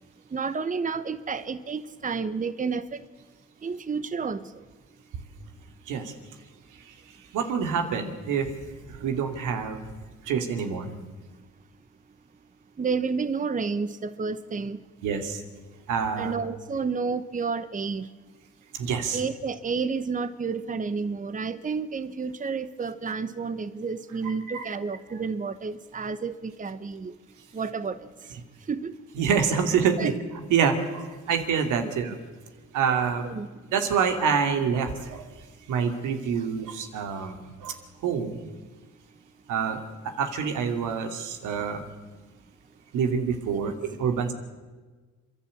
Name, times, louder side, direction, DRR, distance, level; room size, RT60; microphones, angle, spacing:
voice 1, 0.3-3.0 3.6-4.4 12.8-14.8 16.2-18.1 19.1-27.1 27.5-28.0 28.7-28.9 30.0-30.1 31.8-31.9 33.3-33.5 43.5-43.7, right 5 dB, 25° right, 13 dB, 1.0 m, -30 dB
voice 2, 7.3-8.5 8.9-9.8 10.3-10.9 15.0-15.4 15.9-16.3 18.7-19.2 24.2-24.7 29.2-32.2 32.7-33.4 33.7-35.3 35.7-37.8 38.0-38.5 39.5-39.8 40.2-41.9 42.9-43.7 44.0-44.3, right 6 dB, 90° right, 5 dB, 2.6 m, -26 dB
29.5 x 11.5 x 8.6 m, 1.3 s
cardioid pair, 90°, 30 cm